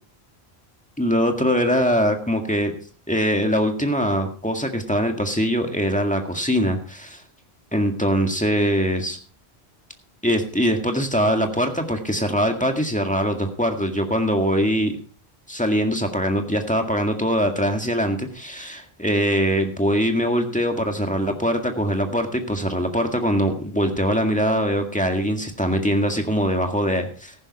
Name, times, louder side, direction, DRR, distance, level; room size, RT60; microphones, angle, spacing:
voice 1, 1.0-2.7 3.1-7.2 7.7-9.2 10.2-15.0 15.5-27.3, equal, 5° left, 4 dB, 1.8 m, -22 dB
14.5 x 11.5 x 4.2 m, 0.41 s
omnidirectional pair, 1.1 m